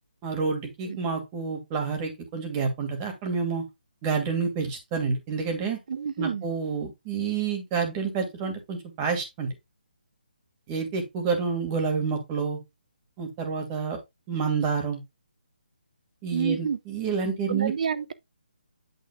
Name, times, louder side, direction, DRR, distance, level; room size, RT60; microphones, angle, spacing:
voice 1, 0.2-3.6 4.0-5.8 6.2-9.5 10.7-12.6 13.2-14.0 14.3-15.0 16.2-17.7, right 5 dB, 20° right, 2.4 m, -28 dB
voice 2, 5.9-6.4 16.3-16.8 17.5-18.1, right 6 dB, 50° right, 0.8 m, -28 dB
8.6 x 6.3 x 2.3 m
figure-of-eight pair, 150°, 5 cm